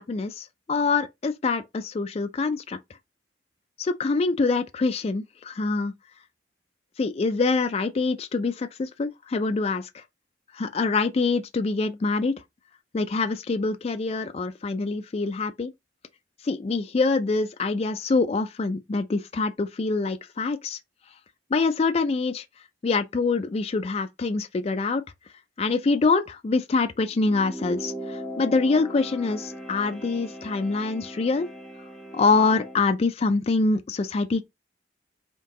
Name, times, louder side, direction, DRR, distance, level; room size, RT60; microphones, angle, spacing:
voice 1, 0.0-2.8 3.8-5.9 7.0-10.0 10.5-12.4 12.9-15.7 16.4-20.8 21.5-22.4 22.8-25.0 25.6-31.5 32.1-34.4, left 3 dB, 35° left, 0.3 m, -25 dB
sound 1, 27.1-32.8, equal, 5° left, 0.7 m, -38 dB
3.7 x 2.7 x 3.7 m
head